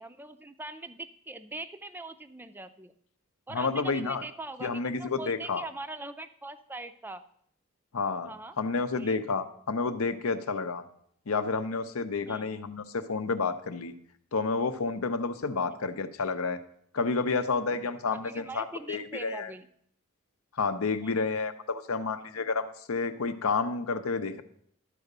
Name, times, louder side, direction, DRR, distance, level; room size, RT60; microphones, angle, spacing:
voice 1, 0.0-2.9 3.5-7.2 8.2-8.6 8.9-9.2 12.2-12.5 15.5-15.8 18.1-19.7 21.0-21.3, right 2 dB, 10° right, 9 dB, 0.4 m, -42 dB
voice 2, 3.5-4.2 4.6-5.6 7.9-10.8 11.3-13.9 14.3-16.6 16.9-19.5 20.5-24.4, left 4 dB, 80° left, 10 dB, 0.7 m, -30 dB
11.5 x 4.9 x 6.6 m, 0.67 s
head